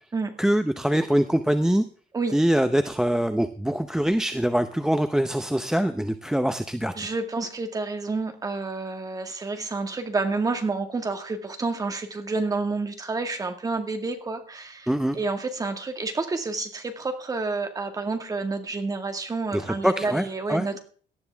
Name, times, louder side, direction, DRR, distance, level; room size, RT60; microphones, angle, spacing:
voice 1, 0.4-1.8 2.3-7.1 14.9-15.2 19.5-20.7, right 1 dB, 5° right, 9 dB, 0.7 m, -24 dB
voice 2, 6.9-14.9 15.1-20.8, right 3 dB, 20° right, 6 dB, 2.0 m, -29 dB
18.0 x 12.0 x 3.5 m, 0.43 s
cardioid pair, 165°, 19 cm